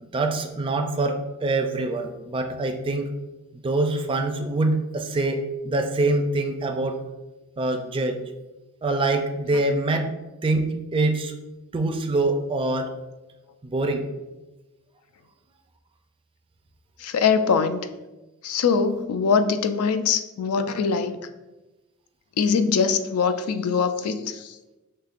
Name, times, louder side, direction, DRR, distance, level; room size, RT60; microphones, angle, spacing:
voice 1, 0.0-3.1 3.6-7.0 7.6-8.2 8.8-10.1 10.4-11.3 11.7-12.9 13.6-14.0, right 2 dB, 25° right, 5 dB, 0.4 m, -24 dB
voice 2, 17.0-17.9 18.4-21.2 22.4-24.6, left 5 dB, 80° left, 9 dB, 0.4 m, -22 dB
5.7 x 3.2 x 2.4 m, 1.1 s
head